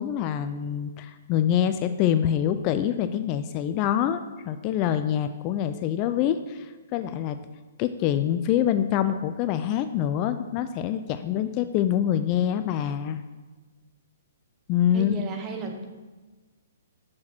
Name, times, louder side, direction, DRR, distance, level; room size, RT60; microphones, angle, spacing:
voice 1, 0.0-7.4 7.8-13.2 14.7-15.2, left 10 dB, 35° left, 10 dB, 0.3 m, -25 dB
voice 2, 14.9-15.9, right 4 dB, 25° right, 4 dB, 0.9 m, -34 dB
6.4 x 5.9 x 4.4 m, 1.3 s
hypercardioid pair, 135°, 0 cm